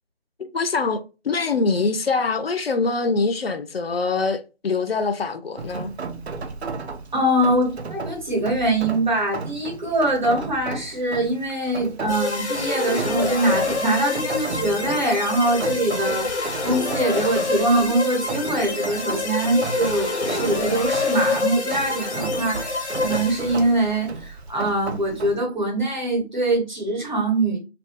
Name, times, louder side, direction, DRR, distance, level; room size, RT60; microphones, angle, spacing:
voice 1, 0.5-5.9, left 4 dB, 65° left, 0.4 m, -24 dB
Rain, 5.6-25.4, right 4 dB, 70° right, 0.5 m, -35 dB
voice 2, 7.1-16.3 16.6-27.6, right 1 dB, 45° right, 1.0 m, -23 dB
sound 1, 12.1-23.8, left 3 dB, 90° left, 0.8 m, -27 dB
2.6 x 2.2 x 2.3 m
figure-of-eight pair, 170°, 33 cm